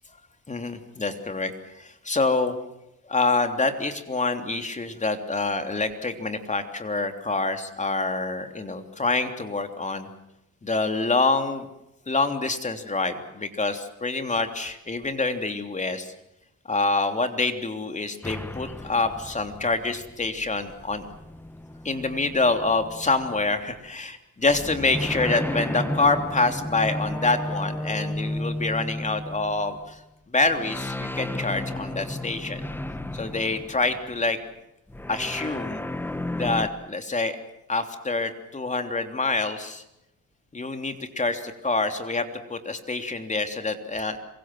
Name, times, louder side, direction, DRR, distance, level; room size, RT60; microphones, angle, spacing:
voice 1, 0.5-1.5 1.8-2.5 3.1-10.1 10.6-11.7 12.1-16.1 16.7-21.0 21.8-30.0 30.3-32.7 33.1-34.4 35.1-35.8 36.4-37.3 37.7-39.8 40.5-44.2, left 3 dB, 25° left, 6 dB, 3.3 m, -26 dB
sound 1, 18.2-23.8 24.4-29.9 30.4-34.3 34.9-36.7, left 1 dB, 5° left, 1.4 m, -33 dB
27.0 x 24.0 x 7.7 m, 0.84 s
cardioid pair, 90°, 30 cm